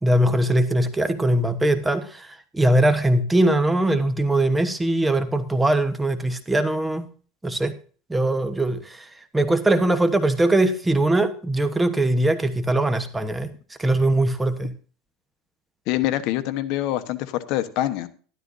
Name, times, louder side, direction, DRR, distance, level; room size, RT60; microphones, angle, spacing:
voice 1, 0.0-7.1 7.4-7.8 8.1-9.1 9.3-13.5 13.8-14.7, right 1 dB, 10° right, 1.1 m, -21 dB
voice 2, 15.9-18.1, left 14 dB, 60° left, 1.1 m, -25 dB
12.5 x 12.5 x 2.7 m
supercardioid pair, 125°, 0 cm